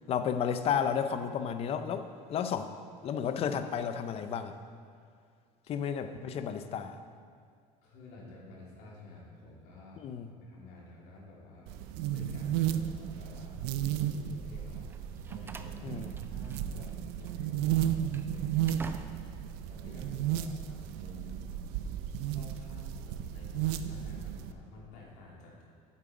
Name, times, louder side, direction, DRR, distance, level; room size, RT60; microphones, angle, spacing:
voice 1, 0.1-2.7 3.0-4.5 5.7-7.0 10.0-10.3 15.8-16.1, left 7 dB, 40° left, 9 dB, 0.5 m, -32 dB
voice 2, 7.8-11.7 12.1-13.6 13.9-14.9 15.3-21.5 22.3-25.6, left 2 dB, 85° left, -4 dB, 2.7 m, -51 dB
sound 1, 11.7-24.5, right 10 dB, 85° right, 0.5 m, -34 dB
Slam, 14.9-16.9 17.2-17.4 17.9-19.5, right 4 dB, 15° right, 0.3 m, -48 dB
8.5 x 7.3 x 5.0 m, 2.2 s
cardioid pair, 145°, 16 cm